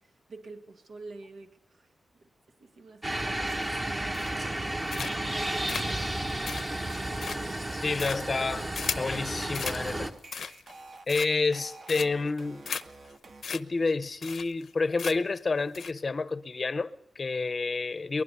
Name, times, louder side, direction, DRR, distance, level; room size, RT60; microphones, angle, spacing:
voice 1, 0.0-1.9 2.2-7.5, right 3 dB, 70° right, 2.1 m, -48 dB
sound 1, 3.0-10.1, right 1 dB, 20° right, 1.2 m, -32 dB
sound 2, 4.1-4.6 4.9-5.3 5.7-9.1 9.5-9.8 10.2-10.7 11.1-11.5 11.9-12.3 12.6-12.8 13.1-13.2 13.4-13.6 13.9-14.0 14.2-14.7 15.0-15.4 15.7-15.9, left 6 dB, 65° left, 0.8 m, -36 dB
voice 2, 7.7-10.1 11.1-12.6 13.5-18.2, left 3 dB, 35° left, 0.8 m, -29 dB
sound 3, 8.4-13.4, right 3 dB, 50° right, 1.7 m, -50 dB
23.0 x 20.0 x 6.9 m
wide cardioid pair, 160°, 0 cm